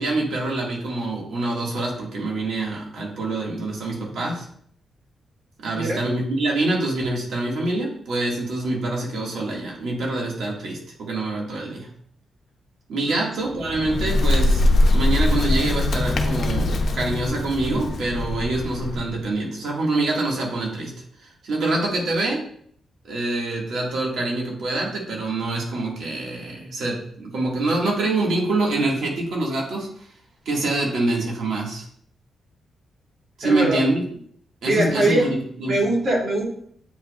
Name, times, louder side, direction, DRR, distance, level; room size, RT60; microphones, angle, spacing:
voice 1, 0.0-4.4 5.6-11.9 12.9-20.9 21.2-22.5 23.1-30.1 30.5-31.8 33.4-34.0 34.6-35.8, right 2 dB, 75° right, -2 dB, 2.1 m, -25 dB
Bird, 13.5-19.2, left 2 dB, 60° left, 0.8 m, -22 dB
voice 2, 33.4-33.8 34.6-35.3 35.7-36.4, right 1 dB, 50° right, -3 dB, 3.0 m, -22 dB
8.6 x 5.1 x 2.5 m, 0.63 s
cardioid pair, 95°, 0 cm